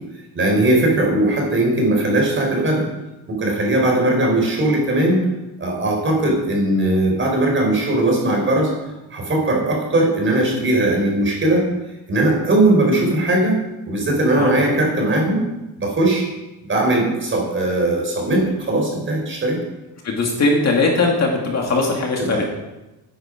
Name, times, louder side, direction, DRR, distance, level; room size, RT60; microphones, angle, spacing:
voice 1, 0.3-2.9 3.3-5.3 5.6-8.7 9.1-11.6 12.1-13.6 13.9-15.5 15.8-16.3 16.7-19.6 22.3-22.4, right 1 dB, 25° right, 0 dB, 4.5 m, -19 dB
voice 2, 20.0-22.4, left 3 dB, 35° left, 0 dB, 2.3 m, -19 dB
13.5 x 10.5 x 5.1 m, 1.0 s
cardioid pair, 150°, 43 cm